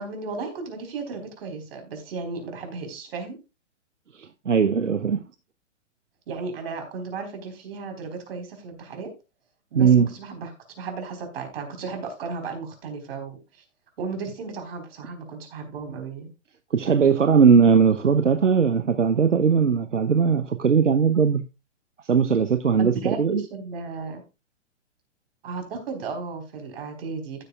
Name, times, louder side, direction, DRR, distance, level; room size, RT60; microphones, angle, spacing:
voice 1, 0.0-3.4 6.3-9.1 9.7-13.6 14.0-16.3 22.8-24.2 25.4-27.5, right 4 dB, 55° right, 4.1 m, -34 dB
voice 2, 4.5-5.2 9.8-10.1 16.7-21.4 22.1-23.4, right 6 dB, 85° right, 0.8 m, -19 dB
15.5 x 6.8 x 2.3 m
figure-of-eight pair, 120°, 36 cm